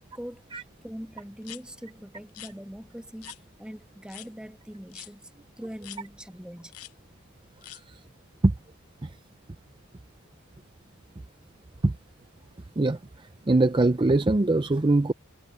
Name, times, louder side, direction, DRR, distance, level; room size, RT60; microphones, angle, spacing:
voice 1, 0.0-6.8, equal, 5° right, 1.2 m, -42 dB
sound 1, 1.4-1.6 2.3-2.5 3.2-3.4 4.1-4.3 4.9-5.1 5.8-6.0 6.7-6.9 7.6-7.8, left 13 dB, 90° left, 1.0 m, -43 dB
voice 2, 13.5-15.1, right 2 dB, 20° right, 0.5 m, -22 dB
head